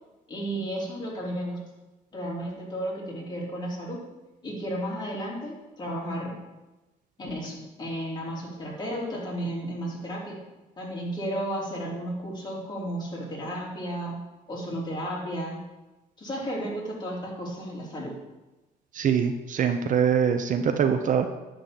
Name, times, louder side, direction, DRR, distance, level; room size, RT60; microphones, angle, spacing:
voice 1, 0.3-1.6 2.1-4.0 4.4-6.4 7.2-10.4 10.8-14.2 14.5-15.6 16.2-18.1, equal, 25° left, -4 dB, 3.1 m, -33 dB
voice 2, 18.9-21.3, right 7 dB, 50° right, 7 dB, 0.7 m, -23 dB
10.5 x 3.8 x 7.4 m, 1.1 s
cardioid pair, 110°, 17 cm